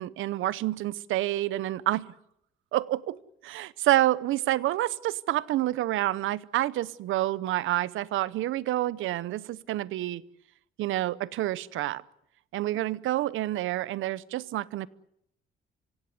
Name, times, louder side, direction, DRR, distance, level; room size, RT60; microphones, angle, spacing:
voice 1, 0.0-2.1 2.7-10.2 10.8-12.0 12.5-14.9, right 15 dB, 85° right, 0.8 m, -28 dB
25.5 x 17.0 x 9.4 m
cardioid pair, 90°, 20 cm